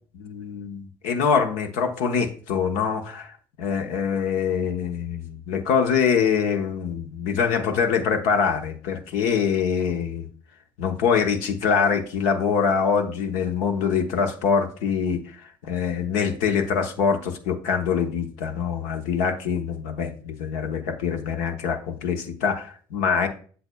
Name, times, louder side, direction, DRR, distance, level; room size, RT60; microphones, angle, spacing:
voice 1, 0.1-3.3 3.6-10.3 10.8-15.2 15.6-23.3, left 6 dB, 75° left, 5 dB, 0.9 m, -24 dB
7.8 x 7.0 x 2.3 m, 0.42 s
hypercardioid pair, 65°, 12 cm